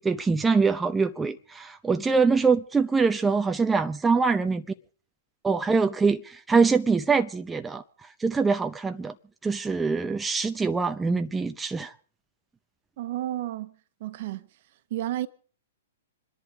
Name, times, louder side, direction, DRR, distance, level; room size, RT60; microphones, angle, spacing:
voice 1, 0.0-4.6 5.4-7.8 8.2-9.1 9.4-11.9, right 4 dB, 10° right, 0.7 m, -24 dB
voice 2, 13.0-14.5 14.9-15.3, right 14 dB, 50° right, 1.2 m, -32 dB
27.5 x 11.0 x 4.9 m
figure-of-eight pair, 110°, 0 cm